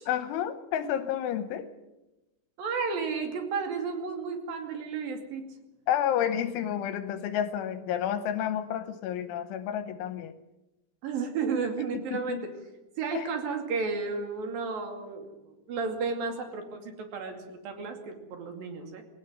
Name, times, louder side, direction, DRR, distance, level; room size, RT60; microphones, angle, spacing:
voice 1, 0.1-1.7 5.9-10.3 11.9-12.4 13.1-13.3, left 10 dB, 75° left, 10 dB, 3.1 m, -30 dB
voice 2, 2.6-5.5 11.0-12.5 13.0-19.0, right 5 dB, 50° right, 5 dB, 3.6 m, -33 dB
21.5 x 18.0 x 7.9 m, 1.0 s
omnidirectional pair, 6.0 m